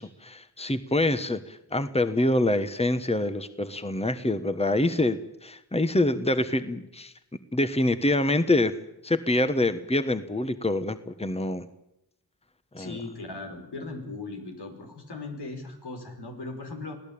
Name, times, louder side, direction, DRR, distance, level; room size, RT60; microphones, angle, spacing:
voice 1, 0.0-7.1 7.5-8.7 9.0-11.7 12.7-12.9, left 1 dB, 15° left, 11 dB, 1.5 m, -26 dB
voice 2, 12.8-16.9, left 3 dB, 85° left, 3 dB, 5.0 m, -38 dB
25.0 x 17.0 x 8.8 m, 0.84 s
cardioid pair, 45°, 39 cm